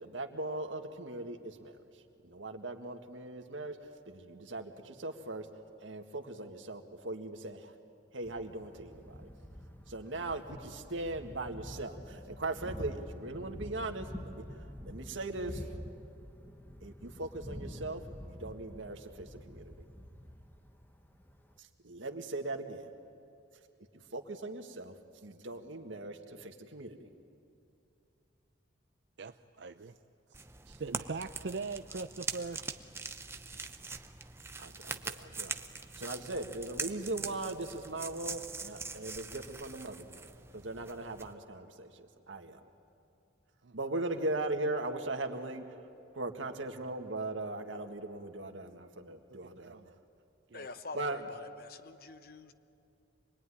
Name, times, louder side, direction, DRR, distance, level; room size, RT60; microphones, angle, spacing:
voice 1, 0.0-1.8 2.2-3.8 4.1-5.5 5.8-7.7 8.1-9.3 9.9-15.7 16.8-19.7 21.6-22.9 24.1-24.9 25.2-27.1 34.6-35.6 36.0-40.3 40.5-42.6 43.7-45.6 46.2-49.8 50.9-51.4, right 2 dB, 85° right, 5 dB, 1.8 m, -39 dB
Thunder, 8.2-21.6, equal, 10° left, 1.1 m, -47 dB
voice 2, 29.2-30.0 30.3-32.6 43.6-43.8 49.3-50.0 50.5-50.7, right 4 dB, 65° right, 8 dB, 0.6 m, -41 dB
sound 1, 30.3-41.3, right 4 dB, 15° right, 0.7 m, -43 dB
voice 3, 50.5-52.5, left 3 dB, 50° left, 11 dB, 0.9 m, -46 dB
26.0 x 21.0 x 9.9 m, 2.6 s
head